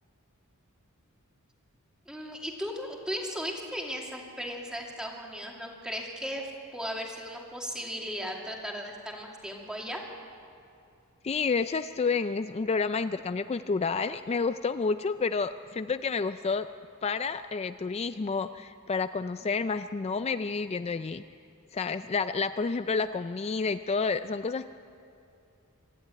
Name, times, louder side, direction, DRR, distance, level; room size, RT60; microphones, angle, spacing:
voice 1, 2.1-10.0, equal, 5° right, -1 dB, 2.5 m, -36 dB
voice 2, 11.2-16.7 17.0-21.2 21.7-24.7, left 4 dB, 30° left, 11 dB, 0.4 m, -29 dB
25.0 x 11.5 x 9.2 m, 2.6 s
head